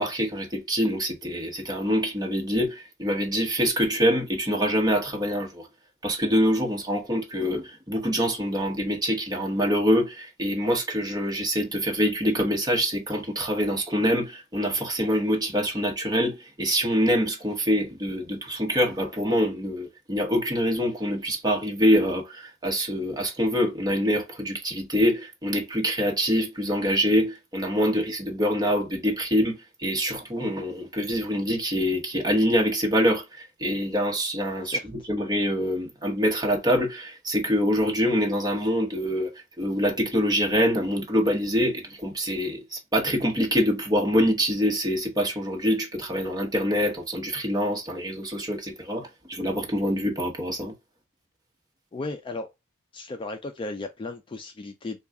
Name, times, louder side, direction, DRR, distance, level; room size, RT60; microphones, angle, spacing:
voice 1, 0.0-5.7 6.0-50.7, equal, 20° right, 0.9 m, -25 dB
voice 2, 51.9-52.5 52.9-55.0, left 2 dB, 25° left, 0.3 m, -35 dB
3.6 x 2.3 x 3.4 m
head